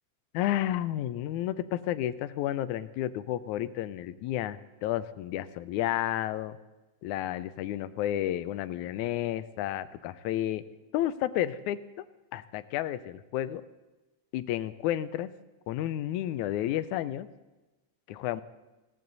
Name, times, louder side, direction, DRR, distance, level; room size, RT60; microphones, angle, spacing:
voice 1, 0.3-6.5 7.0-10.6 10.9-12.1 12.3-13.6 14.3-15.3 15.7-17.3 18.1-18.4, left 12 dB, 85° left, 14 dB, 2.1 m, -31 dB
18.5 x 17.0 x 4.0 m, 1.1 s
omnidirectional pair, 3.4 m